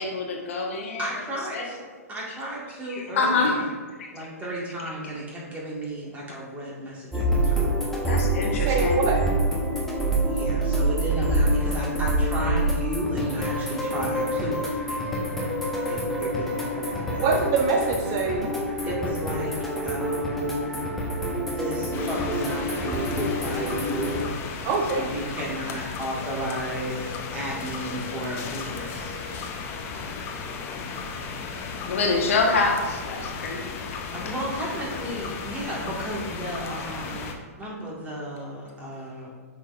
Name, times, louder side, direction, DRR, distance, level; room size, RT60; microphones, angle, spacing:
voice 1, 0.0-1.0 1.5-1.6 2.9-3.6 4.0-4.1 8.1-9.0 31.9-33.9, left 3 dB, 60° left, 0 dB, 1.2 m, -25 dB
voice 2, 1.0-1.8 2.1-3.7 4.1-7.7 10.2-15.0 15.8-17.2 18.9-20.8 21.5-24.3 24.9-29.2 34.1-39.3, right 1 dB, 20° right, -4 dB, 1.9 m, -34 dB
sound 1, 7.1-24.2, right 1 dB, 5° left, 1.2 m, -26 dB
voice 3, 8.6-9.2 17.2-18.5 24.6-25.1, right 4 dB, 35° right, 3 dB, 0.6 m, -24 dB
sound 2, 21.9-37.3, left 5 dB, 30° left, 0.7 m, -35 dB
8.0 x 5.6 x 2.5 m, 1.5 s
figure-of-eight pair, 115°, 8 cm